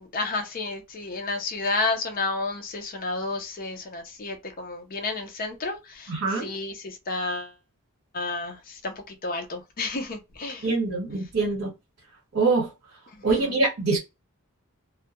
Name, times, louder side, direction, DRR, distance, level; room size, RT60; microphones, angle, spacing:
voice 1, 0.0-7.5 8.1-10.7 13.3-13.5, left 3 dB, 40° left, 0.5 m, -31 dB
voice 2, 6.1-6.5 10.6-11.7 12.3-12.7 13.2-14.0, right 3 dB, 55° right, 1.2 m, -24 dB
2.3 x 2.1 x 2.8 m
head